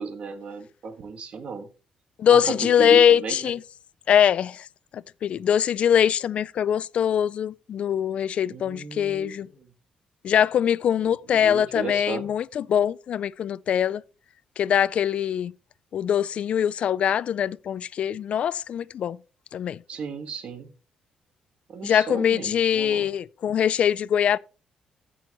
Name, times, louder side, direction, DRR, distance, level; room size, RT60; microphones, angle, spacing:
voice 1, 0.0-1.7 2.3-3.5 8.5-9.3 11.3-12.3 19.9-20.7 21.7-23.1, right 5 dB, 50° right, 1.7 m, -34 dB
voice 2, 2.2-3.6 4.1-4.7 4.9-9.5 10.2-14.0 14.6-15.5 15.9-19.2 19.5-19.8 21.8-24.4, left 9 dB, 55° left, 0.3 m, -22 dB
15.5 x 6.2 x 3.0 m
cardioid pair, 130°, 2 cm